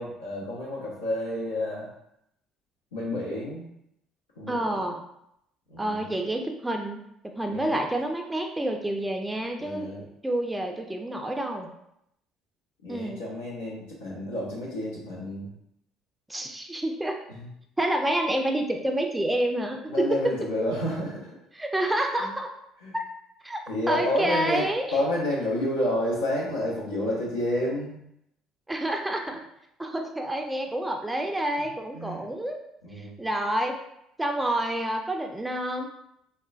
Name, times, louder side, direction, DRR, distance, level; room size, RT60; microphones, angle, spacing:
voice 1, 0.0-1.9 2.9-3.7 4.4-4.8 5.7-6.1 7.5-7.8 9.6-10.0 12.8-15.5 17.3-17.5 19.9-21.3 22.2-22.3 22.8-22.9 23.7-28.0 31.9-32.2 32.8-33.1, left 1 dB, 80° left, -7 dB, 0.6 m, -30 dB
voice 2, 4.5-5.0 5.8-7.0 7.4-9.9 10.2-11.7 12.9-13.2 16.3-17.1 17.8-20.1 21.6-22.5 22.9-23.0 23.4-23.6 23.9-24.9 28.7-29.4 29.8-32.6 32.9-33.7 34.2-35.9, right 1 dB, 10° right, 3 dB, 0.4 m, -28 dB
3.7 x 2.1 x 2.4 m, 0.78 s
figure-of-eight pair, 55°, 0 cm